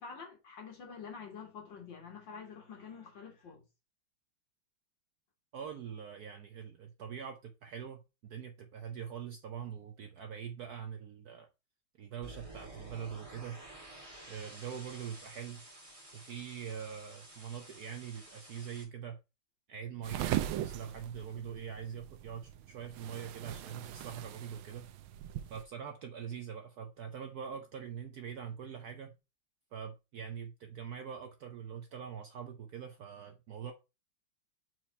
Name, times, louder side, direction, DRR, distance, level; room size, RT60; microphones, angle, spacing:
voice 1, 0.0-3.6, left 6 dB, 60° left, 2.4 m, -47 dB
voice 2, 5.5-11.5 12.0-13.6 14.3-15.6 16.1-19.2 19.7-24.9 25.5-29.1 29.7-33.7, right 8 dB, 65° right, 1.0 m, -43 dB
sound 1, 12.2-18.8, right 1 dB, 15° right, 2.3 m, -52 dB
sound 2, 20.0-25.6, right 13 dB, 80° right, 1.5 m, -39 dB
4.6 x 4.5 x 5.2 m
omnidirectional pair, 2.3 m